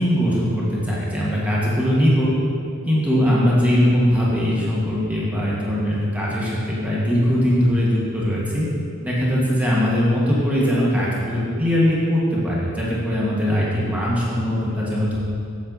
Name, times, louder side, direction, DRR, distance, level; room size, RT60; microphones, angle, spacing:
voice 1, 0.0-2.3 2.9-8.7 9.0-15.2, equal, 5° right, -7 dB, 1.3 m, -20 dB
7.4 x 7.3 x 3.9 m, 2.4 s
head